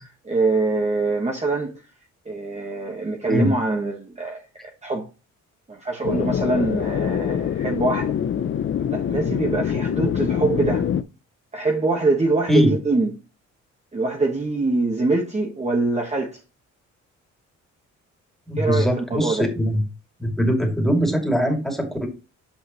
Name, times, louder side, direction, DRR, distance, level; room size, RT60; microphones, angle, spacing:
voice 1, 0.0-1.7 2.2-5.1 5.7-8.1 8.9-10.8 11.5-13.1 13.9-16.3 18.6-19.5, right 3 dB, 20° right, 1.5 m, -24 dB
sound 1, 6.0-11.0, left 8 dB, 40° left, 0.6 m, -24 dB
voice 2, 18.5-19.8 20.2-22.1, equal, ahead, 2.7 m, -21 dB
8.7 x 5.6 x 3.1 m
cardioid pair, 90°, 30 cm